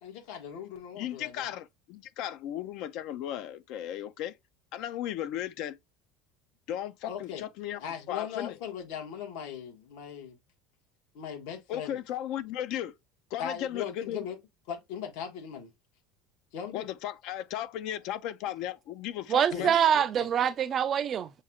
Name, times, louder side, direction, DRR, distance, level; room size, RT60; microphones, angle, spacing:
voice 1, 0.0-1.5 7.1-7.4 7.8-10.4 11.1-12.0 13.4-14.4 14.7-15.7 16.5-16.9 19.5-19.7 19.9-20.0, left 8 dB, 75° left, 1.6 m, -39 dB
voice 2, 1.0-4.4 4.7-5.8 6.7-7.8 8.1-8.6 11.7-12.9 13.3-14.3 16.7-19.8, left 11 dB, 50° left, 0.4 m, -35 dB
voice 3, 19.3-21.3, right 8 dB, 30° right, 0.3 m, -25 dB
7.1 x 2.4 x 2.8 m
cardioid pair, 170°, 0 cm